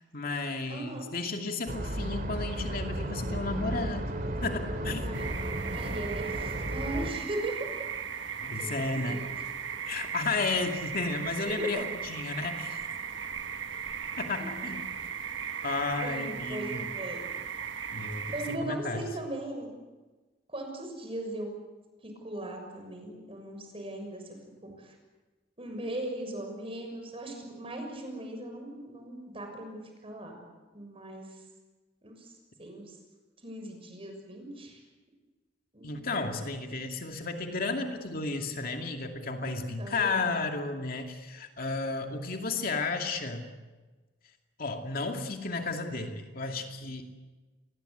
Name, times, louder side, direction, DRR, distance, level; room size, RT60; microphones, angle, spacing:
voice 1, 0.0-4.1 4.4-5.1 8.4-9.2 9.9-12.8 14.2-14.9 15.6-16.8 17.9-19.1 35.8-43.5 44.6-47.0, left 3 dB, 50° left, 4 dB, 2.5 m, -33 dB
voice 2, 0.7-1.1 5.0-5.2 5.7-7.8 8.5-9.3 11.6-11.8 16.0-17.2 18.3-19.7 20.5-21.5 22.0-24.4 24.6-25.0 25.6-30.3 30.7-31.4 32.0-32.3 32.6-33.0 33.4-34.8 35.7-36.1 39.8-40.4, right 1 dB, 30° right, 4 dB, 6.7 m, -38 dB
sound 1, 1.7-7.1, right 1 dB, 50° right, 2.6 m, -34 dB
sound 2, 5.1-18.6, right 7 dB, 70° right, 1.4 m, -37 dB
28.5 x 22.0 x 8.1 m, 1.2 s
head